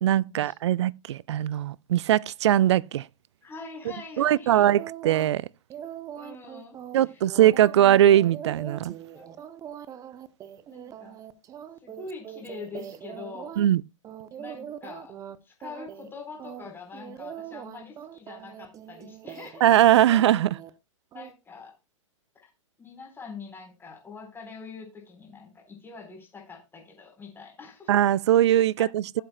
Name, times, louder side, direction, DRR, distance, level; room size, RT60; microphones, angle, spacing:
voice 1, 0.0-3.1 4.2-5.5 6.9-8.9 13.6-13.8 19.6-20.6 27.9-29.2, right 12 dB, 60° right, 0.4 m, -21 dB
voice 2, 3.4-4.6 6.2-6.8 7.0-7.2 9.1-9.3 10.7-11.1 11.8-13.6 14.4-15.1 15.4-19.7 21.1-21.7 22.3-22.5 22.8-27.9 28.8-28.9, left 4 dB, 15° left, 4.0 m, -44 dB
sound 1, 4.7-5.4 5.7-13.7 14.0-15.4 15.6-16.1 16.4-19.8 20.1-20.7 21.1-21.3, right 10 dB, 20° right, 0.7 m, -42 dB
16.5 x 7.7 x 2.2 m
hypercardioid pair, 115°, 17 cm